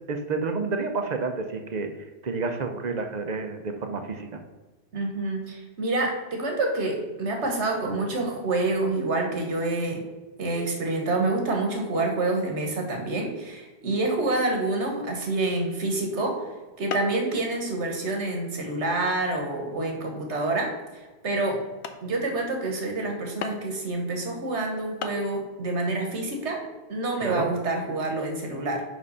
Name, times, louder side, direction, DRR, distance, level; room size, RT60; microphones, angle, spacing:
voice 1, 0.1-1.9 2.2-4.4 27.2-27.5, right 4 dB, 45° right, 5 dB, 0.8 m, -29 dB
voice 2, 4.9-10.0 10.4-16.4 16.8-20.7 21.2-21.6 22.0-26.6 26.9-28.8, right 2 dB, 85° right, 2 dB, 1.6 m, -27 dB
sound 1, 16.9-17.3 17.7-18.1 18.7-18.8 19.4-19.6 20.2-20.3 20.8-20.9 21.4-21.5 21.8-22.1 23.4-23.8 24.7-24.8 25.0-25.3, left 6 dB, 75° left, 0.9 m, -36 dB
5.3 x 5.3 x 5.5 m, 1.2 s
omnidirectional pair, 1.1 m